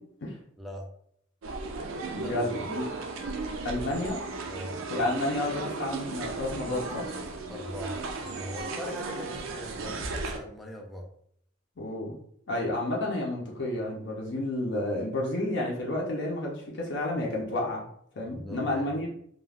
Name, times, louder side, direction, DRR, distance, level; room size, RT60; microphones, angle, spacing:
voice 1, 0.6-0.9 2.2-2.7 4.4-4.8 7.5-11.1 18.2-18.9, equal, ahead, 0 dB, 0.3 m, -41 dB
sound 1, 1.4-10.4, right 3 dB, 80° right, 0.4 m, -35 dB
voice 2, 2.1-2.9 3.6-4.2 4.9-7.0 11.8-12.1 12.5-17.8 18.1-19.1, left 1 dB, 60° left, -2 dB, 0.6 m, -30 dB
2.3 x 2.2 x 3.3 m, 0.68 s
head